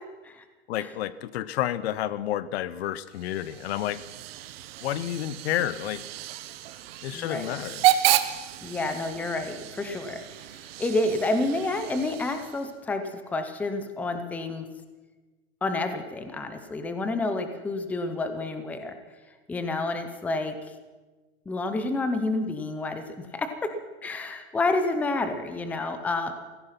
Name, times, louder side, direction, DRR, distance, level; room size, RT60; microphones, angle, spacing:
voice 1, 0.7-4.0 4.8-6.1 7.0-7.9, left 12 dB, 70° left, 18 dB, 0.8 m, -30 dB
Hiss / Train / Alarm, 3.1-12.8, right 13 dB, 65° right, 1.1 m, -31 dB
voice 2, 7.1-7.5 8.6-10.2 10.8-14.7 15.6-19.0 19.5-20.6 21.5-23.7 24.0-26.3, left 2 dB, 5° left, 8 dB, 0.6 m, -29 dB
16.5 x 14.0 x 5.8 m, 1.3 s
supercardioid pair, 170°, 33 cm